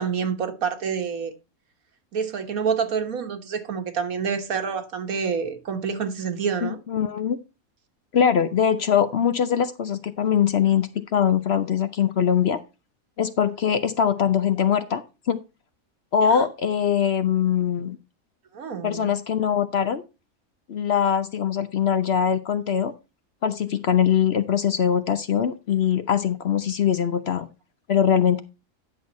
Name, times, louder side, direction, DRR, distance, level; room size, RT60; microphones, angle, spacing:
voice 1, 0.0-1.3 2.1-6.8 16.3-16.4 18.5-19.1, right 6 dB, 75° right, 1.7 m, -27 dB
voice 2, 6.6-7.4 8.1-12.6 13.2-15.4 16.1-18.0 18.8-20.0 20.7-22.9 23.4-27.5 27.9-28.4, left 8 dB, 55° left, 0.8 m, -22 dB
10.5 x 6.3 x 4.0 m
omnidirectional pair, 1.5 m